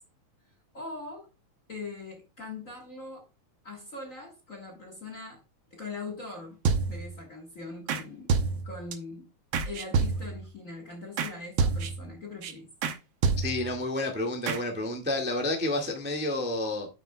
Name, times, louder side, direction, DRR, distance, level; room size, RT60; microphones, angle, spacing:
voice 1, 0.7-1.3 1.7-3.3 3.6-5.4 5.7-8.3 8.6-9.3 9.6-12.7, left 3 dB, 40° left, 1.3 m, -41 dB
sound 1, 6.6-7.2 7.9-8.0 8.3-8.9 9.5-10.5 11.2-11.3 11.6-12.1 12.4-12.5 12.8-13.0 13.2-13.8 14.5-14.6, right 5 dB, 70° right, 1.2 m, -27 dB
voice 2, 13.4-16.9, left 2 dB, 5° right, 0.7 m, -30 dB
9.2 x 8.4 x 2.2 m
omnidirectional pair, 3.4 m